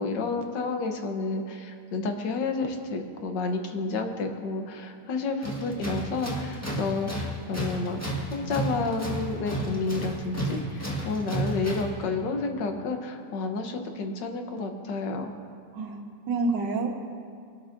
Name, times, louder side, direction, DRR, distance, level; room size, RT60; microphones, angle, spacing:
voice 1, 0.0-8.0 8.3-15.3, left 3 dB, 85° left, 5 dB, 1.7 m, -30 dB
Tools, 5.4-12.0, right 1 dB, 10° left, 1.5 m, -32 dB
voice 2, 15.7-16.9, right 3 dB, 90° right, 3 dB, 1.8 m, -28 dB
22.0 x 12.5 x 2.6 m, 2.3 s
omnidirectional pair, 1.9 m